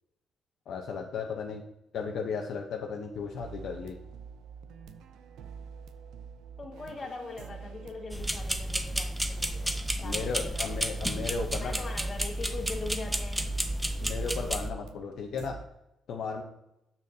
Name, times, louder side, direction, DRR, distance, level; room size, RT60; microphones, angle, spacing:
voice 1, 0.7-1.6 1.9-4.0 10.0-11.8 14.0-15.6 16.1-16.4, left 5 dB, 70° left, 1 dB, 0.8 m, -35 dB
sound 1, 3.1-15.6, right 6 dB, 85° right, 0.4 m, -47 dB
voice 2, 6.6-11.1 11.6-13.6, left 3 dB, 40° left, 1 dB, 1.7 m, -42 dB
sound 2, 8.1-14.7, right 1 dB, 5° right, 0.6 m, -32 dB
7.1 x 6.6 x 2.7 m, 0.84 s
cardioid pair, 90°, 0 cm